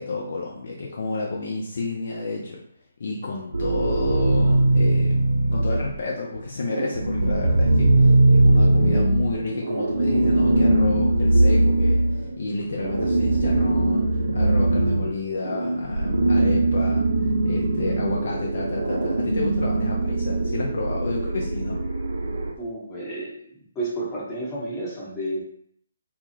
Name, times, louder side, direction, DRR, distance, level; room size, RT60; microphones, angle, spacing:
voice 1, 0.0-2.6 3.0-5.3 5.5-21.8, left 3 dB, 50° left, -2 dB, 0.4 m, -31 dB
sound 1, 3.5-6.0 6.4-22.5, right 2 dB, 65° right, 0.4 m, -21 dB
voice 2, 22.6-25.4, right 1 dB, 15° left, -7 dB, 0.8 m, -31 dB
2.1 x 2.0 x 2.9 m, 0.66 s
figure-of-eight pair, 140°, 0 cm